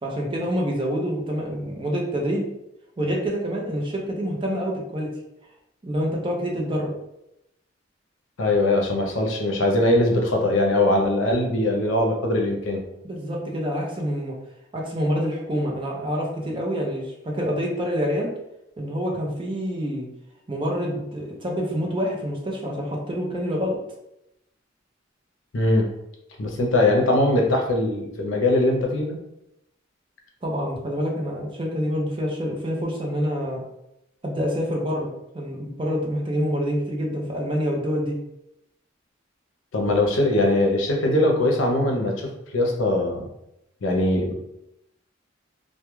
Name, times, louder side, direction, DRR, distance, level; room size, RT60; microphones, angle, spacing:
voice 1, 0.0-2.5 3.0-5.1 5.8-6.9 13.0-14.3 14.7-18.3 18.8-20.1 20.5-23.8 30.4-33.6 34.2-38.2, equal, 25° right, -1 dB, 0.5 m, -27 dB
voice 2, 8.4-12.8 25.5-25.9 26.4-29.2 39.7-43.3 43.8-44.3, left 1 dB, 85° left, 1 dB, 0.6 m, -21 dB
2.2 x 2.1 x 3.0 m, 0.85 s
head